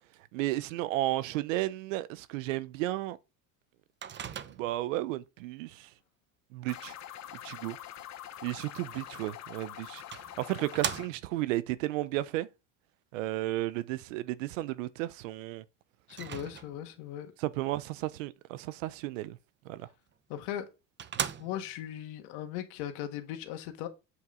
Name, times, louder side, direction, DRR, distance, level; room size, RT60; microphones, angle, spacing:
voice 1, 0.3-3.2 4.6-5.9 6.5-6.9 7.4-7.8 8.4-10.0 10.4-12.5 13.1-15.6 17.4-19.4 19.6-19.9, right 16 dB, 85° right, 0.7 m, -33 dB
Microwave oven, 4.0-4.9 9.3-9.4 10.1-11.5 16.1-17.0 20.1-20.2 20.6-20.7 21.0-21.9, right 8 dB, 30° right, 0.8 m, -38 dB
sound 1, 6.7-11.1, left 11 dB, 45° left, 1.1 m, -45 dB
voice 2, 16.1-17.3 20.3-20.7 21.4-23.9, left 11 dB, 75° left, 1.7 m, -38 dB
7.9 x 5.4 x 3.8 m
supercardioid pair, 100°, 37 cm